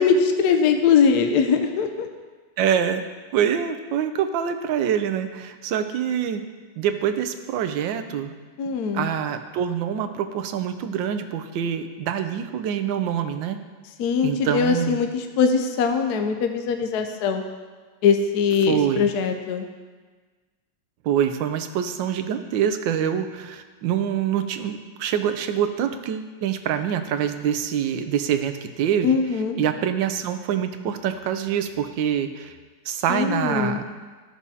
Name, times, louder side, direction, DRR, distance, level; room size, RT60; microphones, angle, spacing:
voice 1, 0.0-2.1 8.6-9.1 14.0-17.4 18.0-19.7 29.0-29.6 32.9-33.8, left 6 dB, 70° left, 5 dB, 1.1 m, -21 dB
voice 2, 2.6-3.0 3.3-6.4 6.8-8.3 8.7-13.6 14.2-15.0 18.7-19.1 21.0-29.1 29.6-32.5 32.9-33.8, right 9 dB, 90° right, 9 dB, 1.3 m, -25 dB
14.0 x 6.1 x 2.8 m, 1.4 s
omnidirectional pair, 2.0 m